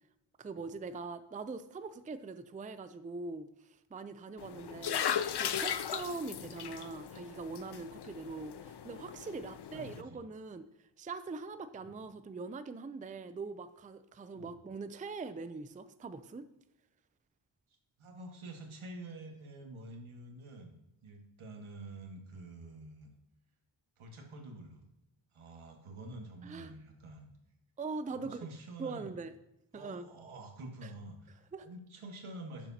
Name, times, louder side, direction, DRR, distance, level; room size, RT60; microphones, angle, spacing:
voice 1, 0.4-5.1 5.4-16.5 26.4-26.7 27.8-28.5 28.8-29.3 29.7-30.1 30.8-30.9 31.5-31.7, right 4 dB, 15° right, 11 dB, 0.4 m, -42 dB
sound 1, 4.4-10.0, left 9 dB, 55° left, 0.6 m, -37 dB
voice 2, 9.7-10.2 11.8-11.9 14.3-14.5 18.0-20.8 21.0-23.1 24.0-24.8 25.3-27.3 28.1-29.1 29.7-32.7, right 2 dB, 80° right, 2 dB, 1.7 m, -48 dB
11.0 x 7.2 x 2.8 m, 0.89 s
wide cardioid pair, 75°, 48 cm